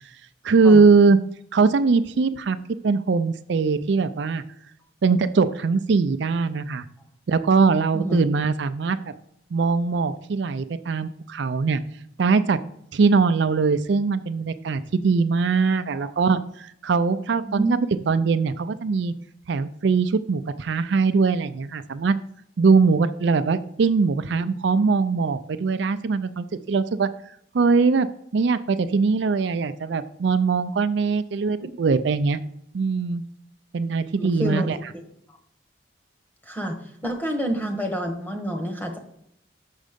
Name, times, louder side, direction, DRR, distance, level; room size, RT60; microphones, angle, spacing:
voice 1, 0.4-1.2 1.5-2.6 2.8-4.4 5.0-6.9 7.3-9.0 9.5-11.8 12.2-12.6 12.9-17.8 18.1-19.1 19.5-22.2 22.6-28.1 28.3-32.4 32.7-33.2 33.7-34.8, right 4 dB, 65° right, 11 dB, 0.4 m, -21 dB
voice 2, 34.2-34.8 36.4-36.8 37.0-39.0, right 1 dB, 10° left, 2 dB, 1.2 m, -28 dB
6.5 x 6.2 x 5.1 m, 0.71 s
head